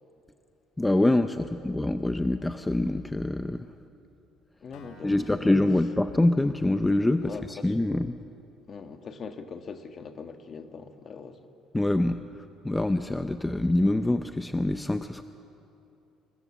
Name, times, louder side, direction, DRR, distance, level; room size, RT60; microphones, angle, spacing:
voice 1, 0.8-3.7 5.0-8.1 11.7-12.2 12.6-15.2, left 1 dB, 10° left, 9 dB, 0.5 m, -25 dB
voice 2, 4.6-5.5 7.2-7.8 8.7-11.5, left 5 dB, 35° left, 7 dB, 1.5 m, -42 dB
Acoustic guitar, 4.7-8.6, left 4 dB, 85° left, 3.5 m, -57 dB
27.5 x 20.5 x 7.3 m, 2.9 s
cardioid pair, 135°, 0 cm